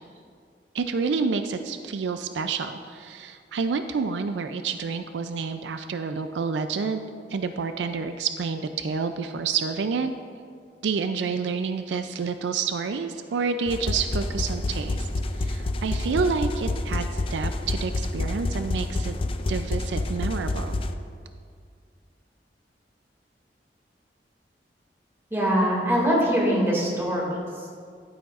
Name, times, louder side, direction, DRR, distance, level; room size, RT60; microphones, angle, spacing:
voice 1, 0.7-7.0 7.3-10.1 10.8-15.1 15.4-19.2 19.5-20.8, right 5 dB, 80° right, 8 dB, 0.4 m, -28 dB
sound 1, 13.7-20.9, left 2 dB, 30° left, 0.4 m, -28 dB
voice 2, 25.3-27.2 27.6-27.7, equal, 15° right, -4 dB, 2.2 m, -22 dB
11.0 x 9.2 x 2.4 m, 2.1 s
head